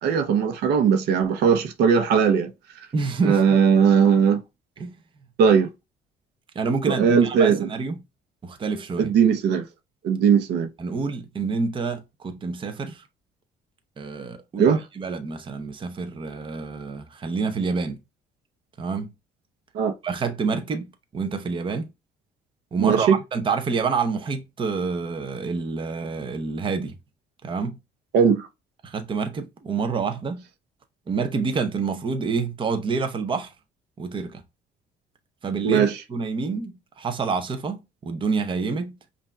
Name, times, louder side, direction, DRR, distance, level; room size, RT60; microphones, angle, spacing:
voice 1, 0.0-2.5 3.2-4.4 5.4-5.7 6.9-7.7 9.0-9.6 10.0-10.7 14.6-14.8 19.7-19.9 22.8-23.2 28.1-28.5 35.6-36.0, right 7 dB, 80° right, 0.9 m, -19 dB
voice 2, 2.9-3.6 4.8-5.0 6.5-8.0 8.4-9.1 10.8-13.0 14.0-18.0 18.8-19.1 20.0-21.9 22.7-27.0 27.4-27.8 28.8-30.4 31.1-33.5 34.0-34.4 35.4-39.0, right 4 dB, 30° right, 0.8 m, -28 dB
5.5 x 2.6 x 2.3 m
cardioid pair, 110°, 17 cm